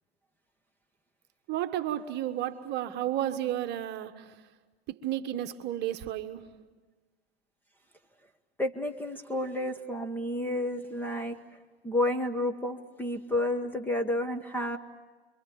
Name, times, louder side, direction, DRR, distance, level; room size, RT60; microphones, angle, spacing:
voice 1, 1.5-4.4 4.9-6.5, right 12 dB, 35° right, 1.4 m, -32 dB
voice 2, 8.6-11.4 11.8-14.8, left 1 dB, 5° left, 1.2 m, -30 dB
30.0 x 23.5 x 7.2 m
hypercardioid pair, 110°, 31 cm